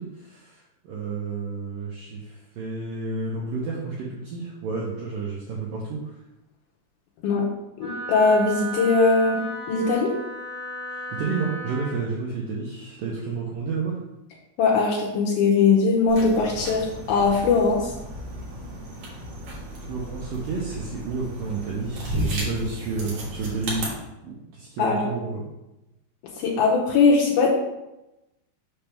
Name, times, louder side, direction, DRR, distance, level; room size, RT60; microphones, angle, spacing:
voice 1, 0.0-6.1 10.9-14.0 19.9-23.9 24.2-25.5, right 4 dB, 90° right, -4 dB, 1.9 m, -31 dB
voice 2, 7.8-10.1 14.6-17.9 24.8-25.1 26.4-27.6, left 4 dB, 75° left, -3 dB, 2.2 m, -20 dB
Wind instrument woodwind instrument, 7.8-12.0, right 2 dB, 15° right, 0.6 m, -34 dB
sound 1, 16.1-23.9, equal, 55° right, 2.2 m, -34 dB
6.5 x 3.5 x 5.9 m, 0.95 s
omnidirectional pair, 5.3 m